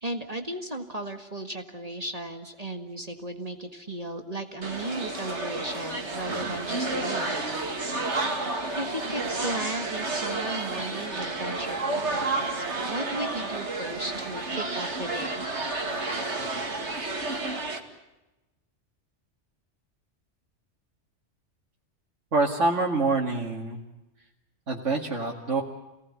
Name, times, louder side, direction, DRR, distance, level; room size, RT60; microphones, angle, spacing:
voice 1, 0.0-7.4 8.2-15.4, right 1 dB, 30° right, 6 dB, 1.8 m, -36 dB
sound 1, 4.6-17.8, right 2 dB, 70° right, 2.8 m, -31 dB
voice 2, 22.3-23.8 24.7-25.6, right 3 dB, 90° right, -1 dB, 2.6 m, -26 dB
28.0 x 18.5 x 9.7 m, 1.0 s
omnidirectional pair, 1.2 m